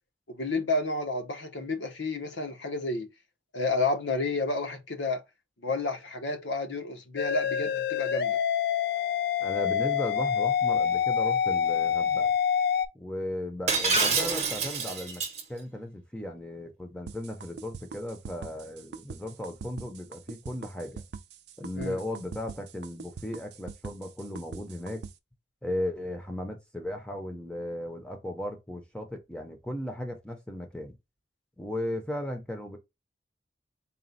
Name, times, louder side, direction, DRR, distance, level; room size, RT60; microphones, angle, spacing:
voice 1, 0.3-3.1 3.5-5.2 5.6-8.4 21.8-22.0, left 3 dB, 80° left, 0.9 m, -30 dB
sound 1, 7.2-12.9, left 8 dB, 55° left, 0.4 m, -26 dB
voice 2, 9.4-12.3 12.9-15.2 15.5-21.0 21.6-25.0 25.6-31.0 31.6-32.8, left 1 dB, 5° left, 0.6 m, -36 dB
Shatter, 13.7-15.4, right 4 dB, 35° right, 0.9 m, -27 dB
sound 2, 17.1-25.1, right 5 dB, 65° right, 0.4 m, -42 dB
4.1 x 2.2 x 3.9 m
head